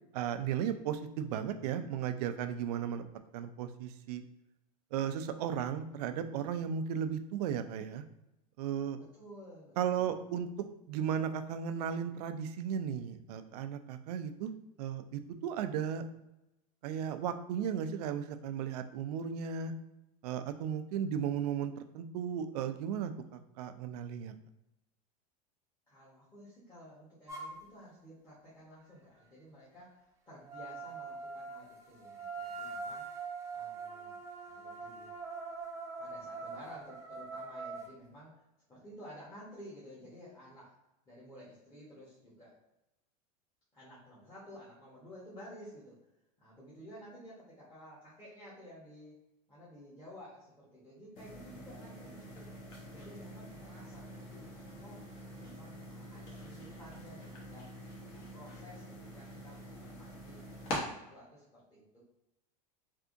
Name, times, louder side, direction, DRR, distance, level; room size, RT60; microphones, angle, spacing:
voice 1, 0.1-3.1 3.3-4.2 4.9-8.0 8.6-9.0 9.8-10.5 10.9-14.5 14.8-16.0 16.8-19.7 20.2-23.1 23.6-24.3, right 8 dB, 75° right, 9 dB, 0.4 m, -35 dB
voice 2, 9.0-10.3 25.9-33.3 33.5-35.1 36.0-40.8 41.1-42.6 43.7-46.0 46.4-49.2 49.5-52.5 52.9-54.5 54.8-55.1 55.4-57.7 58.1-60.4 60.8-62.0, equal, 20° left, -8 dB, 1.1 m, -53 dB
sound 1, 27.3-27.5 30.5-37.9, right 4 dB, 15° right, 0.5 m, -43 dB
sound 2, 51.2-60.8, equal, 45° left, 1.1 m, -45 dB
3.4 x 2.7 x 2.5 m, 0.92 s
supercardioid pair, 130°, 20 cm